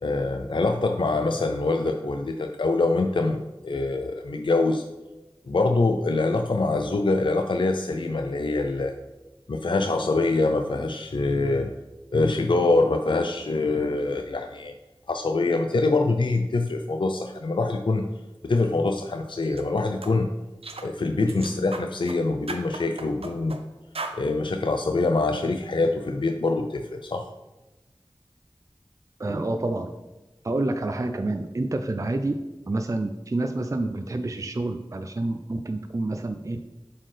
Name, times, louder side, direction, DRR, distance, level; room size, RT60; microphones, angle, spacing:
voice 1, 0.0-4.8 5.5-8.9 9.5-11.7 12.1-14.7 15.1-18.0 18.4-20.3 20.8-23.6 24.1-27.3, left 3 dB, 60° left, 5 dB, 0.4 m, -24 dB
sound 1, 19.4-19.6 20.0-20.2 20.6-20.9 21.3-22.2 22.5-23.6 23.9-24.2, right 3 dB, 85° right, 0.5 m, -36 dB
voice 2, 29.2-29.9 30.4-32.3 32.7-36.6, right 2 dB, 35° right, 7 dB, 0.3 m, -28 dB
7.4 x 4.3 x 3.2 m, 1.1 s
wide cardioid pair, 45°, 10 cm